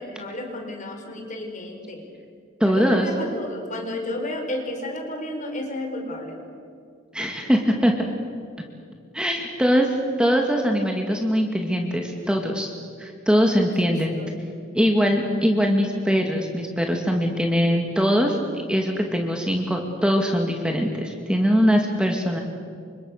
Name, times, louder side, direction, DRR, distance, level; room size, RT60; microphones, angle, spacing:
voice 1, 0.0-2.1 2.6-6.4 13.8-14.5, left 1 dB, 40° left, 3 dB, 4.9 m, -32 dB
voice 2, 2.6-3.1 7.1-7.9 9.1-9.9 10.2-12.7 13.0-14.2 14.7-18.4 18.7-22.4, equal, 5° right, 2 dB, 2.2 m, -21 dB
30.0 x 26.0 x 6.6 m, 2.3 s
head